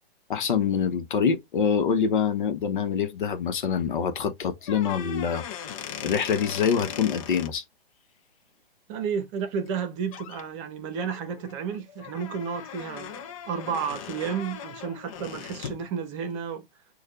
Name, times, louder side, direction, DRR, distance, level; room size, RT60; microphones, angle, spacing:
voice 1, 0.3-5.4 6.0-7.6, left 7 dB, 55° left, 1.0 m, -25 dB
sound 1, 4.6-7.5 9.7-9.8 10.1-10.4 10.9-15.9, left 8 dB, 35° left, 0.7 m, -39 dB
voice 2, 8.9-16.7, right 7 dB, 30° right, 1.0 m, -32 dB
6.5 x 2.5 x 3.2 m
figure-of-eight pair, 130°, 30 cm